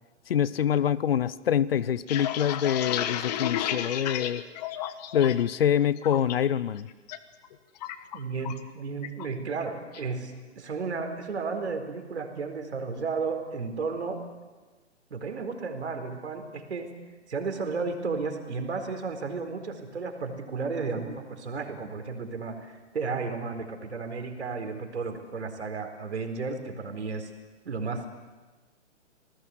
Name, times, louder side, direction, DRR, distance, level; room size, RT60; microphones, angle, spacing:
voice 1, 0.3-4.4 5.1-6.9, left 9 dB, 55° left, 19 dB, 1.0 m, -25 dB
sound 1, 1.8-5.5 5.8-6.3 6.7-7.2 7.4-8.7 9.0-9.3 9.6-10.1, left 11 dB, 35° left, 1.5 m, -33 dB
voice 2, 8.1-14.2 15.1-16.9 17.3-27.3 27.6-28.0, right 4 dB, 65° right, 6 dB, 4.4 m, -33 dB
29.0 x 19.5 x 8.1 m, 1.3 s
figure-of-eight pair, 125°, 36 cm